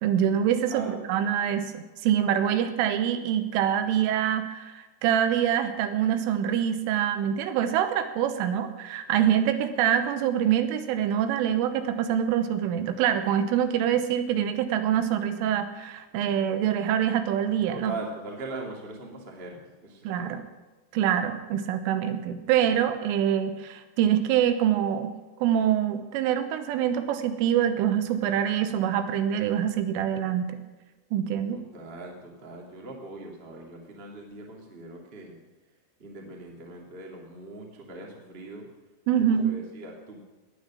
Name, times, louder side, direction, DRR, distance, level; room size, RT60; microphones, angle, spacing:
voice 1, 0.0-17.9 20.1-20.4 20.9-25.1 25.4-30.6 31.1-31.6 39.1-39.5, right 9 dB, 85° right, 9 dB, 3.5 m, -25 dB
voice 2, 0.7-1.0 17.7-20.4 31.5-35.4 36.0-38.7 39.2-40.2, right 2 dB, 25° right, 0 dB, 1.2 m, -41 dB
18.0 x 10.0 x 6.3 m, 1.2 s
omnidirectional pair, 5.7 m